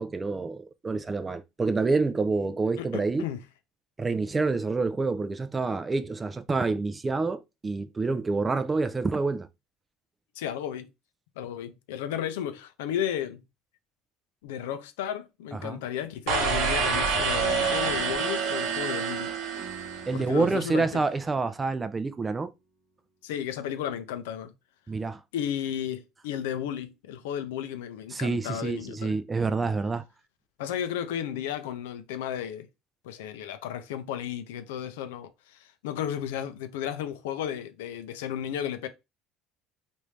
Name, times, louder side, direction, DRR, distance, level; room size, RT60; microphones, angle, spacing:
voice 1, 0.0-3.3 4.0-9.5 15.6-15.8 20.1-22.5 24.9-25.2 28.1-30.1, right 3 dB, 20° right, 0.4 m, -27 dB
voice 2, 2.8-3.4 10.4-10.9 11.4-13.4 14.4-19.3 20.1-21.0 23.2-24.5 25.3-29.2 30.6-32.7 33.0-38.9, left 10 dB, 90° left, 0.5 m, -33 dB
sound 1, 16.3-20.5, right 5 dB, 65° right, 1.0 m, -27 dB
sound 2, 17.4-22.5, right 1 dB, 5° left, 1.2 m, -50 dB
3.2 x 2.6 x 3.2 m
supercardioid pair, 95°, 0 cm